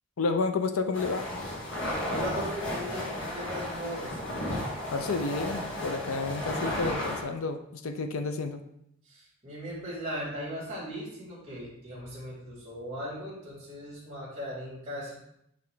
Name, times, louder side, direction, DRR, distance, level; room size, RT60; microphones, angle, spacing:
voice 1, 0.2-1.3 4.9-8.6, left 3 dB, 80° left, 8 dB, 0.6 m, -30 dB
sound 1, 0.9-7.2, left 1 dB, 65° left, 1.7 m, -34 dB
voice 2, 1.8-4.2 9.0-15.2, equal, 30° right, -11 dB, 2.7 m, -38 dB
9.3 x 3.3 x 3.9 m, 0.76 s
head